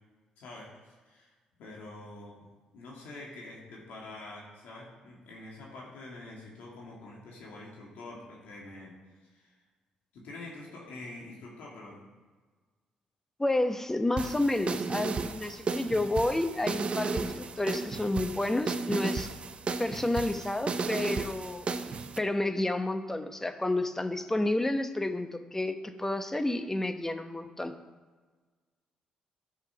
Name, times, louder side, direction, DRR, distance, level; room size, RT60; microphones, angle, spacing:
voice 1, 0.4-0.7 1.1-1.3 1.6-2.5 2.7-9.5 10.1-12.0, left 2 dB, 80° left, -3 dB, 2.2 m, -46 dB
voice 2, 13.4-19.3 19.8-21.7 22.2-27.7, left 2 dB, 15° left, 9 dB, 0.9 m, -30 dB
sound 1, 14.2-22.2, right 4 dB, 45° right, 0.7 m, -34 dB
11.0 x 6.0 x 5.8 m, 1.4 s
supercardioid pair, 60°, 3 cm